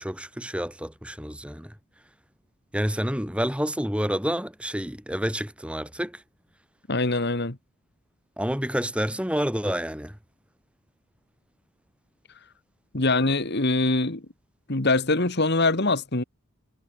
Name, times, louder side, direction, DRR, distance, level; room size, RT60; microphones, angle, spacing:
voice 1, 0.0-1.7 2.7-6.2 8.4-10.2, equal, 5° right, 5.4 m, -28 dB
voice 2, 6.9-7.6 12.9-14.2 14.7-16.2, left 2 dB, 50° left, 1.9 m, -23 dB
head